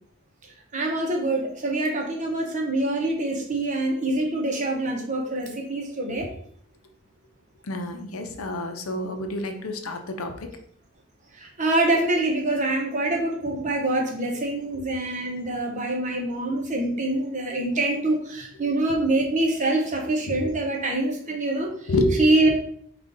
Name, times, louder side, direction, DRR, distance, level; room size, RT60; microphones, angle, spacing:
voice 1, 0.7-6.3 11.4-21.7 22.2-22.5, right 2 dB, 35° right, 0 dB, 0.9 m, -25 dB
voice 2, 7.6-10.5 14.7-14.8 18.6-18.7 20.3-20.5 21.9-22.3, left 1 dB, 85° left, 6 dB, 0.7 m, -28 dB
5.3 x 2.5 x 3.9 m, 0.63 s
head